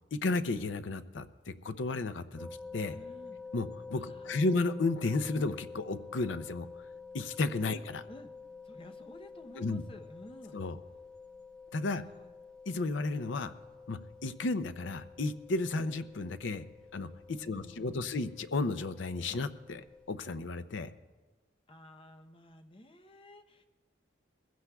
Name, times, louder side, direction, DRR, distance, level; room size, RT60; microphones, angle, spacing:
voice 1, 0.1-3.0 3.5-6.7 7.1-8.0 9.6-9.8 10.5-10.8 11.7-12.0 12.7-13.5 13.9-16.6 16.9-20.9, left 3 dB, 70° left, 11 dB, 0.6 m, -33 dB
sound 1, 2.4-20.2, left 4 dB, 5° left, 0.4 m, -49 dB
voice 2, 2.9-3.4 3.9-4.4 7.7-8.3 8.6-10.6 11.8-12.3 17.3-18.2 21.7-23.6, left 1 dB, 25° left, 6 dB, 0.7 m, -53 dB
21.0 x 15.5 x 2.3 m, 1.3 s
head